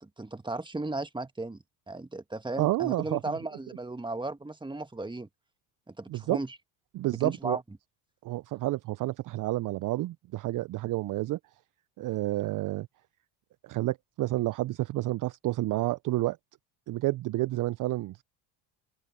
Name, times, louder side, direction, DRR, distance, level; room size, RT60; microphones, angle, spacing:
voice 1, 0.0-5.3 5.9-6.6 7.2-7.6, right 2 dB, 10° right, 1.7 m, -36 dB
voice 2, 2.6-3.2 6.1-6.4 6.9-7.6 8.2-11.4 12.0-12.9 13.6-16.4 16.9-18.2, right 17 dB, 50° right, 0.5 m, -30 dB
open air
supercardioid pair, 80°, 43 cm